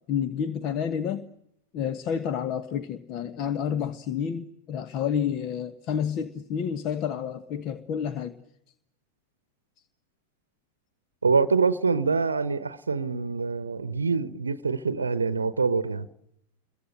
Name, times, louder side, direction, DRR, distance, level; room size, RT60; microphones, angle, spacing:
voice 1, 0.1-1.3 1.7-8.3, left 8 dB, 40° left, 1.3 m, -29 dB
voice 2, 11.2-16.1, right 4 dB, 75° right, 0.9 m, -25 dB
28.5 x 22.5 x 7.9 m
figure-of-eight pair, 90°, 0 cm